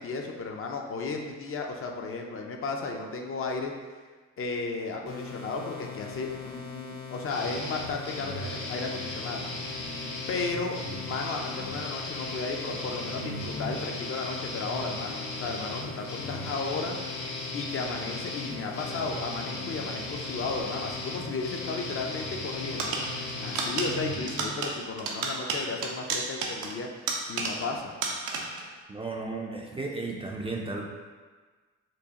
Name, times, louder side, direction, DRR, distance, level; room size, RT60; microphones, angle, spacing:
voice 1, 0.0-3.7 4.4-9.4 10.3-10.8 11.1-17.0 17.5-23.0 23.4-26.9 27.3-27.9, left 3 dB, 45° left, 2 dB, 0.5 m, -34 dB
sound 1, 5.1-24.2, left 6 dB, 60° left, 1.1 m, -42 dB
sound 2, 7.3-24.5, left 1 dB, 90° left, 0.9 m, -37 dB
sound 3, 22.8-27.8 28.0-28.7, right 3 dB, 85° right, 0.6 m, -32 dB
voice 2, 28.9-30.9, right 3 dB, 20° right, 0 dB, 0.4 m, -34 dB
4.6 x 2.4 x 2.9 m, 1.4 s
cardioid pair, 90°, 30 cm